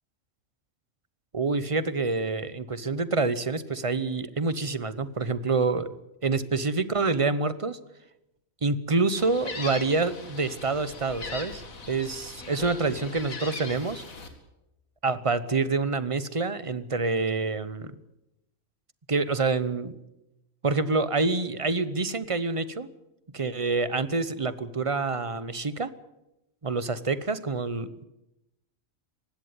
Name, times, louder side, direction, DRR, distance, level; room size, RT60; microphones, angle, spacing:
voice 1, 1.3-5.9 6.2-7.8 8.6-11.6 11.9-14.0 15.0-17.9 19.1-19.9 20.6-22.9 23.3-25.9 26.6-28.0, right 3 dB, 30° right, 15 dB, 0.8 m, -27 dB
Gull seagull, 9.2-14.3, left 3 dB, 85° left, 2.7 m, -40 dB
19.0 x 16.0 x 9.6 m, 0.94 s
omnidirectional pair, 1.4 m